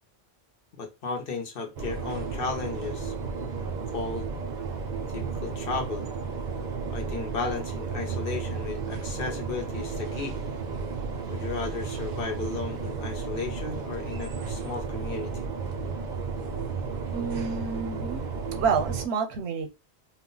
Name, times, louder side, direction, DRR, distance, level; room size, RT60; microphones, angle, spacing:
voice 1, 0.8-3.1 3.9-4.3 5.1-6.1 6.9-10.3 11.3-15.5, left 4 dB, 60° left, 0.8 m, -34 dB
sound 1, 1.8-19.1, right 5 dB, 55° right, 0.6 m, -33 dB
voice 2, 17.1-18.3 18.6-19.7, right 5 dB, 80° right, 0.9 m, -28 dB
2.3 x 2.1 x 3.8 m
omnidirectional pair, 1.1 m